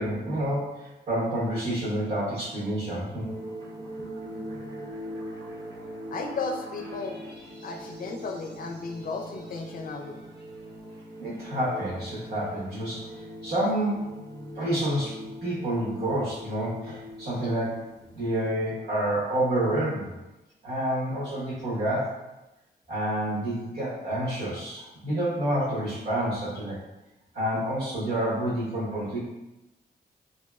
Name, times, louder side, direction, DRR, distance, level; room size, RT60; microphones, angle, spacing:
voice 1, 0.0-3.3 11.2-13.1 13.4-14.1 14.5-15.2 15.4-17.8 18.1-20.1 20.6-22.2 22.9-26.8 27.3-29.2, right 1 dB, 65° right, -10 dB, 1.1 m, -28 dB
sound 1, 3.2-18.5, equal, 85° right, 0.9 m, -41 dB
voice 2, 6.1-7.2 7.6-10.2, left 3 dB, 55° left, 3 dB, 0.4 m, -34 dB
3.1 x 2.7 x 2.3 m, 0.99 s
cardioid pair, 70°, 17 cm